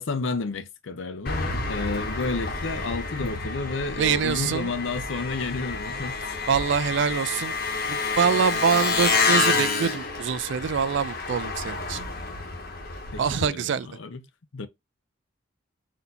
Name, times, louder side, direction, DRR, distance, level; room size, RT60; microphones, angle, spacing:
voice 1, 0.0-6.4 13.1-14.2 14.5-14.7, left 3 dB, 75° left, 0.6 m, -31 dB
Engine, 1.2-13.5, left 4 dB, 50° left, 1.0 m, -28 dB
voice 2, 4.0-4.7 6.5-7.5 7.9-12.0 13.2-13.9, right 6 dB, 65° right, 0.4 m, -25 dB
4.3 x 2.7 x 4.0 m
head